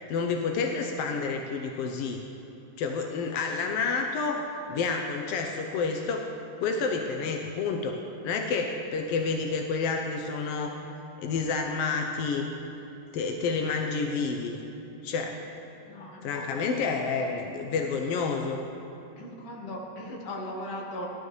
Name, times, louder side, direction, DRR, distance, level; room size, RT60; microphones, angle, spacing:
voice 1, 0.1-2.2 2.8-4.4 4.7-6.3 6.6-8.0 8.2-10.8 11.2-12.5 13.1-14.6 15.0-15.4 16.2-18.6, left 4 dB, 80° left, 3 dB, 1.4 m, -29 dB
voice 2, 15.9-16.8 19.2-21.1, left 1 dB, 50° left, -1 dB, 1.9 m, -38 dB
17.5 x 12.0 x 3.2 m, 3.0 s
omnidirectional pair, 3.5 m